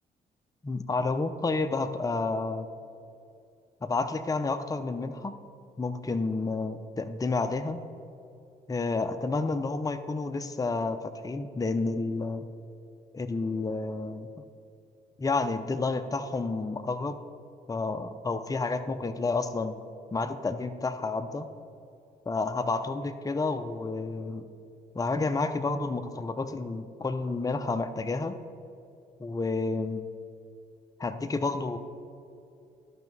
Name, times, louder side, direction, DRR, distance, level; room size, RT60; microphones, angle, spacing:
voice 1, 0.6-2.7 3.8-5.3 5.8-7.8 8.7-12.5 13.1-14.3 15.2-17.2 17.7-19.8 20.1-21.5 22.3-24.5 24.9-28.4 29.2-30.1 31.0-31.8, left 3 dB, 15° left, 9 dB, 0.6 m, -30 dB
12.0 x 5.7 x 4.1 m, 2.6 s
hypercardioid pair, 45°, 21 cm